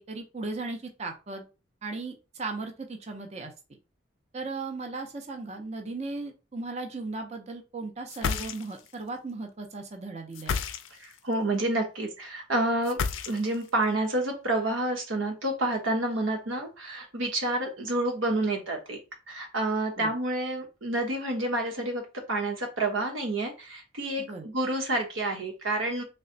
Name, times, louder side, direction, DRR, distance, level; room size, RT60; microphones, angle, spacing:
voice 1, 0.0-1.5 1.8-3.5 4.3-10.6 20.0-20.1 24.2-24.4, right 3 dB, 35° right, 3 dB, 0.5 m, -37 dB
sound 1, 8.1-8.9 10.3-11.2 12.8-13.7, left 6 dB, 80° left, 0.4 m, -31 dB
voice 2, 11.0-13.0 13.3-19.0 19.3-26.0, right 1 dB, 85° right, 3 dB, 1.1 m, -29 dB
3.2 x 2.2 x 3.8 m, 0.30 s
head